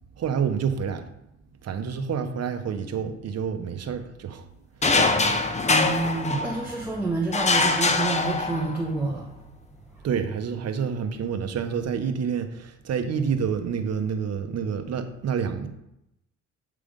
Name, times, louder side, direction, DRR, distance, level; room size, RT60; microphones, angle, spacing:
voice 1, 0.1-1.1 1.6-4.5 4.8-4.9 10.0-15.7, right 6 dB, 55° right, 7 dB, 1.0 m, -28 dB
sound 1, 4.8-6.8 7.3-8.9, left 3 dB, 25° left, 0.7 m, -23 dB
voice 2, 5.7-9.3, right 3 dB, 5° right, -4 dB, 1.2 m, -28 dB
8.6 x 3.4 x 5.2 m, 0.82 s
cardioid pair, 90°, 30 cm